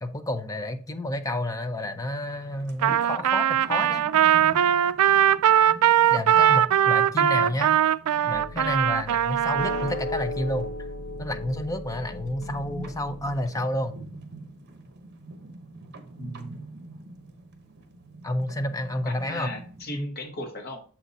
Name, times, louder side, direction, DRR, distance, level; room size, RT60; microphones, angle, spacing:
voice 1, 0.0-4.0 6.1-7.8 8.3-10.7 11.2-13.9 18.2-19.5, left 1 dB, 15° left, 8 dB, 0.6 m, -30 dB
sound 1, 1.9-20.0, right 2 dB, 50° right, 1.0 m, -45 dB
Trumpet, 2.8-9.9, right 10 dB, 80° right, 0.3 m, -20 dB
sound 2, 8.3-13.4, left 2 dB, 80° left, 0.7 m, -36 dB
voice 2, 16.2-16.6 19.1-20.8, left 1 dB, 45° left, 2 dB, 1.3 m, -36 dB
7.2 x 4.0 x 4.1 m, 0.41 s
head